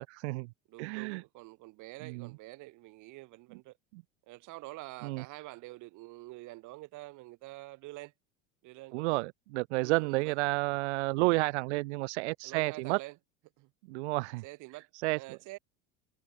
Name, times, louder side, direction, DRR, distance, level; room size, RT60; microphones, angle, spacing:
voice 1, 0.0-0.5 0.8-1.2 2.0-2.3 3.9-4.0 5.0-5.2 8.9-13.0 13.9-14.4 15.0-15.6, right 25 dB, 80° right, 1.1 m, -31 dB
voice 2, 0.7-3.8 4.3-8.1 8.6-9.2 9.8-10.3 12.4-13.2 13.6-13.7 14.4-14.9 15.1-15.6, right 20 dB, 60° right, 4.5 m, -47 dB
supercardioid pair, 100°, 34 cm